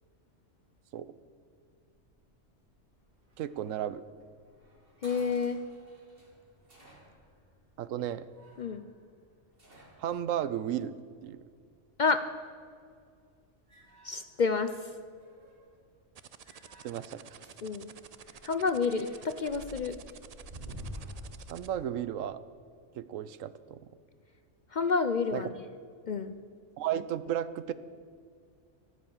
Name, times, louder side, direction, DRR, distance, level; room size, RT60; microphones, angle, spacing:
sound 1, 1.7-11.5 12.8-13.1 13.5-14.8 15.1-15.8 16.4-21.5, equal, 50° right, 3.3 m, -51 dB
voice 1, 3.4-4.0 7.8-8.3 10.0-10.9 11.2-11.4 16.8-17.4 21.5-22.4 22.9-23.8 25.3-25.4 26.8-27.7, right 10 dB, 85° right, 15 dB, 1.0 m, -34 dB
voice 2, 5.0-5.6 8.6-8.9 12.0-12.2 14.0-15.0 17.6-17.9 18.4-20.0 24.7-25.6 26.0-26.4, left 4 dB, 50° left, 10 dB, 0.5 m, -29 dB
sound 2, 16.1-21.7, right 8 dB, 70° right, 0.3 m, -50 dB
12.5 x 12.5 x 7.2 m, 2.2 s
omnidirectional pair, 1.3 m